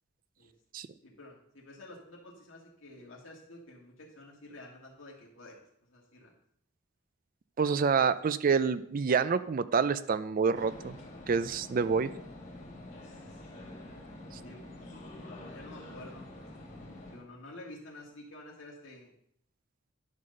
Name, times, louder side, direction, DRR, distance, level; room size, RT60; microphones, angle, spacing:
voice 1, 1.0-6.3 14.4-14.6 15.2-19.1, left 1 dB, 85° left, -3 dB, 1.9 m, -50 dB
voice 2, 7.6-11.0 11.3-12.1, right 5 dB, 45° right, 14 dB, 0.4 m, -27 dB
sound 1, 10.5-17.1, left 1 dB, 40° left, 2.4 m, -47 dB
10.5 x 4.0 x 6.5 m, 0.70 s
head